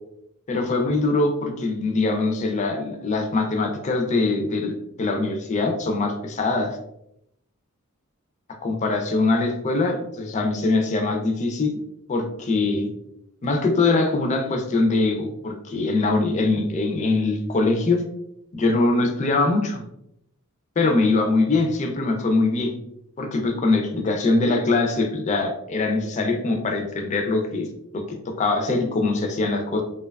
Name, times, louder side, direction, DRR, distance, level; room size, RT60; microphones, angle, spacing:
voice 1, 0.5-4.7 5.0-6.8 8.6-11.7 12.1-12.9 13.4-18.0 18.5-19.8 20.8-22.7 23.2-27.7 27.9-29.8, left 3 dB, 30° left, 4 dB, 0.3 m, -22 dB
2.7 x 2.2 x 2.2 m, 0.79 s
head